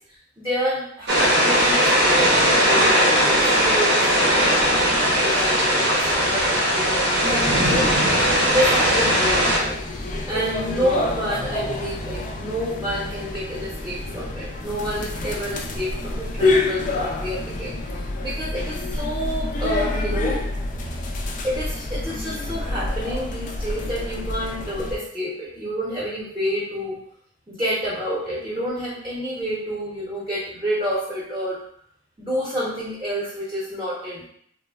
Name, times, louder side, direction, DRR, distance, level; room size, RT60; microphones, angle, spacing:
voice 1, 0.1-7.9 8.5-9.8 10.3-20.4 21.4-27.0 27.5-31.6 32.2-34.3, equal, 15° right, -8 dB, 0.7 m, -29 dB
sound 1, 1.1-9.6, equal, 65° right, 0.7 m, -19 dB
sound 2, 7.2-25.0, left 2 dB, 45° left, 0.3 m, -28 dB
3.1 x 2.1 x 2.3 m, 0.67 s
head